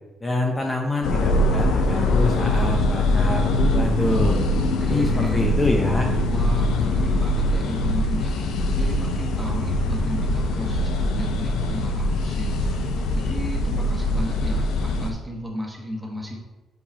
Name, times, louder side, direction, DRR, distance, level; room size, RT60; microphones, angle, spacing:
voice 1, 0.2-4.4 4.8-6.1, left 2 dB, 20° left, 1 dB, 0.8 m, -25 dB
sound 1, 1.0-15.1, left 1 dB, 85° left, 0.7 m, -22 dB
voice 2, 4.6-5.5 6.3-16.3, equal, 15° right, -1 dB, 1.5 m, -34 dB
7.8 x 5.0 x 2.8 m, 1.1 s
cardioid pair, 90°, 0 cm